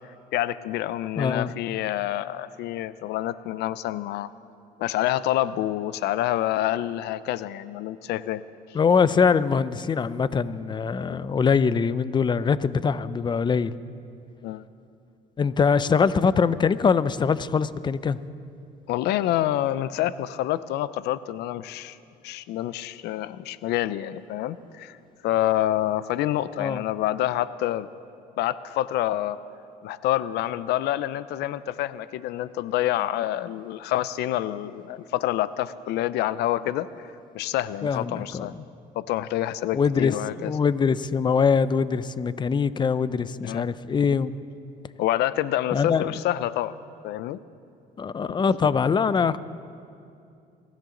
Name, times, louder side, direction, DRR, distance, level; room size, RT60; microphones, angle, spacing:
voice 1, 0.3-4.3 4.8-8.4 14.4-14.6 18.9-22.0 22.2-25.0 25.2-27.9 28.4-29.4 29.8-36.9 37.3-38.5 38.9-40.5 43.4-43.7 45.0-46.7 47.0-47.4, left 13 dB, 80° left, 16 dB, 0.5 m, -27 dB
voice 2, 1.2-1.5 8.7-13.7 15.4-18.2 26.6-26.8 37.8-38.6 39.7-44.3 45.7-46.1 48.0-49.4, left 5 dB, 25° left, 16 dB, 0.5 m, -23 dB
23.5 x 13.5 x 3.8 m, 2.5 s
cardioid pair, 110°, 17 cm